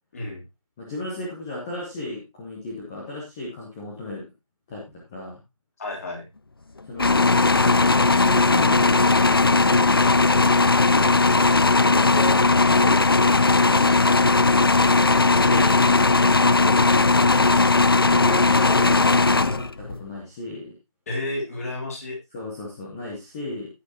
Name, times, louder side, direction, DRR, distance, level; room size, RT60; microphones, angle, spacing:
voice 1, 0.1-0.4 5.8-6.3 10.8-11.3 16.6-16.8 21.1-22.2, left 2 dB, 25° left, 0 dB, 3.0 m, -32 dB
voice 2, 0.8-4.2 4.7-4.8 5.1-5.4 6.9-10.5 11.7-12.3 12.6-13.0 13.5-14.1 14.7-15.8 16.6-17.2 18.0-20.7 22.3-23.7, left 2 dB, 5° left, -4 dB, 0.7 m, -34 dB
sound 1, 7.0-20.0, left 3 dB, 40° left, 0.4 m, -18 dB
15.5 x 6.2 x 2.9 m, 0.24 s
figure-of-eight pair, 160°, 18 cm